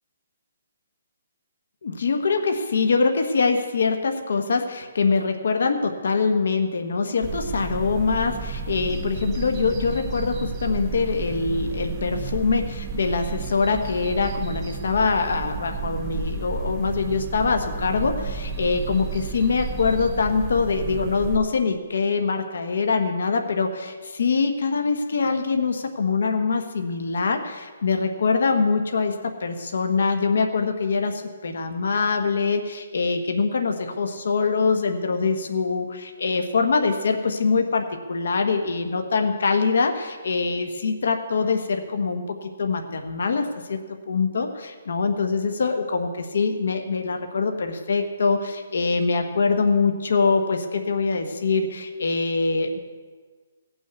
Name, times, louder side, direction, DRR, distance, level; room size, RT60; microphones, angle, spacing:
voice 1, 1.8-43.8 44.1-52.8, left 4 dB, 65° left, 5 dB, 1.3 m, -24 dB
sound 1, 7.2-21.4, right 4 dB, 15° right, 0.6 m, -32 dB
16.5 x 6.4 x 8.1 m, 1.5 s
hypercardioid pair, 170°, 0 cm